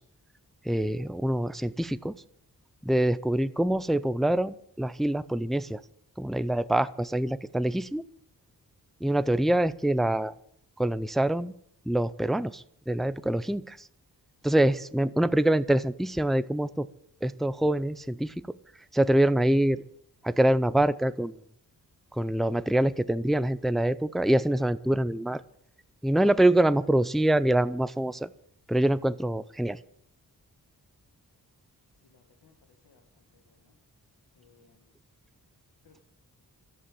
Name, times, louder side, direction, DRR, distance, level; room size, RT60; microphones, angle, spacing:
voice 1, 0.7-2.2 2.9-5.8 6.2-8.0 9.0-10.3 10.8-11.5 11.9-13.8 14.4-16.9 17.2-18.3 18.9-19.8 20.2-21.3 22.2-25.4 26.0-28.3 28.7-29.8, right 1 dB, ahead, 14 dB, 0.5 m, -25 dB
voice 2, 32.1-32.5 32.8-33.0 33.5-33.6 34.4-34.8 35.9-36.0, left 5 dB, 85° left, 2 dB, 2.0 m, -61 dB
14.0 x 11.5 x 7.5 m, 0.67 s
wide cardioid pair, 80°, 37 cm